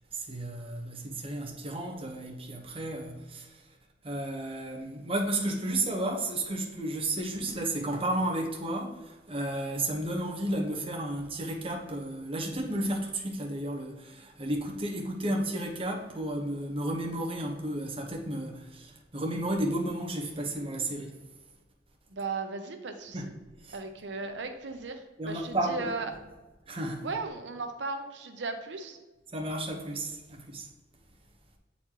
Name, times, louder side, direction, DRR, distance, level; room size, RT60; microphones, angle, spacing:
voice 1, 0.1-3.7 4.0-21.2 23.1-23.3 23.6-23.8 25.2-25.9 26.7-27.1 29.3-30.7, right 1 dB, 30° right, 1.0 m, -33 dB
voice 2, 22.1-23.2 23.7-26.1 27.0-29.0, right 4 dB, 90° right, 0.7 m, -36 dB
7.9 x 4.2 x 3.0 m
head